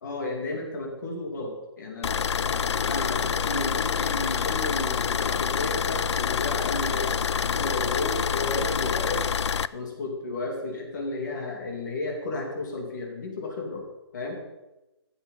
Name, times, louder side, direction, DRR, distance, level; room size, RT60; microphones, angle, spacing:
voice 1, 0.0-9.2 9.7-13.8 14.1-14.4, left 2 dB, 45° left, 1 dB, 2.7 m, -33 dB
sound 1, 2.0-9.7, left 7 dB, 80° left, 0.5 m, -27 dB
16.0 x 7.2 x 5.5 m, 1.0 s
hypercardioid pair, 175°, 14 cm